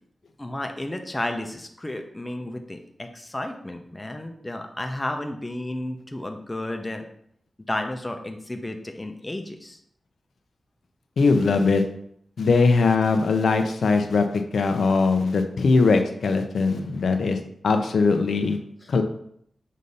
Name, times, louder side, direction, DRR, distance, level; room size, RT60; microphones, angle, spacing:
voice 1, 0.4-7.0 7.7-9.8 18.8-18.9, left 1 dB, 15° left, 4 dB, 0.6 m, -32 dB
voice 2, 11.2-11.8 12.4-17.4 17.6-18.6 18.9-19.0, left 4 dB, 80° left, 6 dB, 0.6 m, -20 dB
6.4 x 2.7 x 5.4 m, 0.69 s
wide cardioid pair, 130°, 0 cm